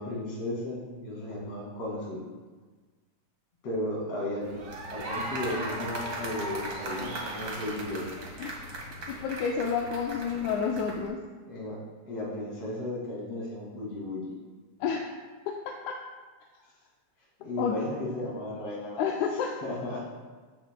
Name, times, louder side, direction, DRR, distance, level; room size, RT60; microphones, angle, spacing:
voice 1, 0.0-2.2 3.6-4.6 4.9-8.1 11.5-11.8 12.1-14.3 17.4-19.1 19.6-20.1, left 1 dB, 55° left, -4 dB, 3.3 m, -35 dB
sound 1, 4.4-11.1, right 1 dB, 50° right, 1.4 m, -37 dB
voice 2, 9.1-11.2 14.8-15.1 15.5-16.0 17.6-17.8 19.0-19.5, left 6 dB, 80° left, 1 dB, 1.9 m, -30 dB
14.0 x 6.0 x 2.2 m, 1.4 s
omnidirectional pair, 3.4 m